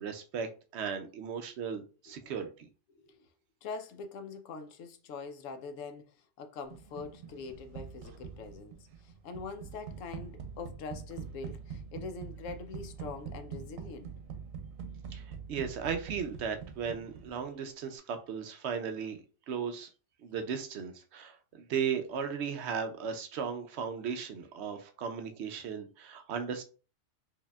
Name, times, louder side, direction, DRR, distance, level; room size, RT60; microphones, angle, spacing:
voice 1, 0.0-2.7 15.1-19.2 19.5-19.9 20.2-26.6, right 6 dB, 65° right, 0.8 m, -36 dB
voice 2, 2.9-3.3 3.6-14.1, left 4 dB, 75° left, 0.9 m, -44 dB
sound 1, 6.7-17.6, right 6 dB, 85° right, 1.1 m, -44 dB
4.7 x 2.7 x 2.2 m
omnidirectional pair, 1.4 m